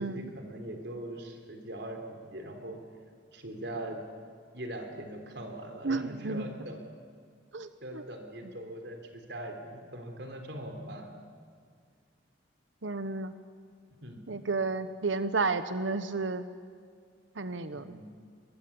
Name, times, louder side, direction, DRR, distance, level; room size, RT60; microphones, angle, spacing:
voice 1, 0.0-2.8 3.3-4.0 4.5-6.8 7.8-11.1 14.0-14.2 17.7-18.1, right 1 dB, 65° right, 5 dB, 3.5 m, -41 dB
voice 2, 5.8-6.5 7.5-8.0 12.8-13.3 14.3-16.5 17.4-18.0, right 3 dB, 90° right, 11 dB, 1.0 m, -32 dB
22.5 x 22.0 x 8.7 m, 2.1 s
head